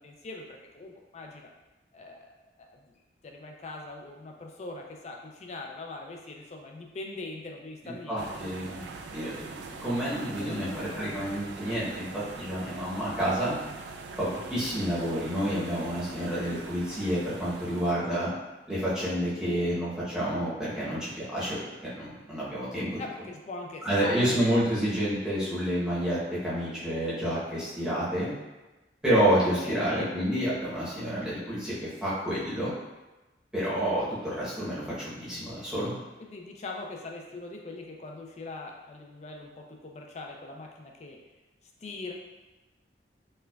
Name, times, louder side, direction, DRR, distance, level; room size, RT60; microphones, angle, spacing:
voice 1, 0.0-1.5 1.9-2.2 2.6-2.9 3.2-8.4 9.9-10.1 10.4-11.3 16.2-16.6 23.0-24.5 29.4-30.1 36.2-41.2 41.8-42.1, left 2 dB, 40° left, 1 dB, 0.4 m, -42 dB
voice 2, 7.8-8.8 9.1-13.6 14.2-18.3 18.7-22.9 23.8-28.3 29.0-32.7 33.5-35.9, equal, 5° right, -10 dB, 0.8 m, -29 dB
sound 1, 8.2-17.9, right 4 dB, 80° right, 0.3 m, -43 dB
4.3 x 2.2 x 2.2 m, 1.1 s
head